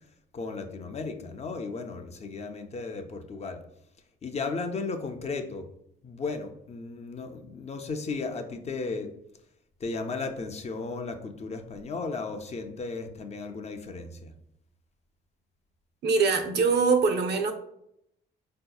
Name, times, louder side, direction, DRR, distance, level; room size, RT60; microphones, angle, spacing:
voice 1, 0.3-3.6 4.2-5.7 6.0-9.1 9.8-14.3, left 4 dB, 35° left, 0.4 m, -35 dB
voice 2, 16.0-17.5, right 4 dB, 55° right, 0.5 m, -23 dB
3.9 x 2.7 x 2.2 m
cardioid pair, 90°, 20 cm